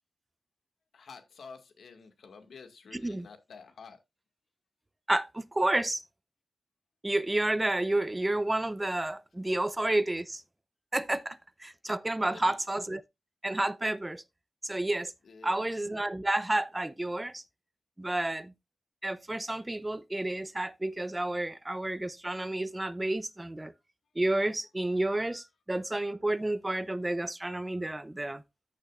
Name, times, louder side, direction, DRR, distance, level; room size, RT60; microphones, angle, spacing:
voice 1, 0.9-4.0 12.2-12.6 15.2-15.7, left 5 dB, 85° left, 1.9 m, -50 dB
voice 2, 2.9-3.3 5.1-6.0 7.0-10.4 10.9-13.0 13.4-14.2 14.6-15.1 15.4-17.4 18.0-18.5 19.0-23.7 24.2-28.4, right 1 dB, 15° right, 0.7 m, -30 dB
14.0 x 6.6 x 2.5 m
wide cardioid pair, 95°, 0 cm